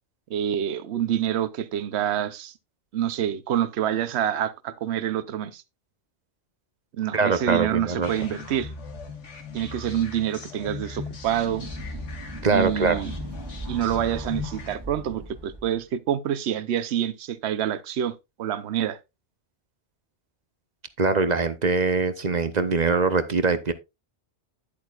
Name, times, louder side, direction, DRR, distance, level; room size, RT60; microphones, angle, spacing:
voice 1, 0.3-2.5 2.9-5.6 6.9-8.7 9.5-11.7 12.5-13.1 13.7-19.0, right 10 dB, 70° right, 1.0 m, -27 dB
voice 2, 7.1-8.3 12.4-13.0 21.0-23.7, right 4 dB, 40° right, 0.8 m, -23 dB
sound 1, 8.0-14.8, left 4 dB, 90° left, 1.9 m, -39 dB
sound 2, 10.9-15.8, right 1 dB, 20° right, 1.4 m, -38 dB
10.0 x 8.7 x 2.4 m
omnidirectional pair, 1.2 m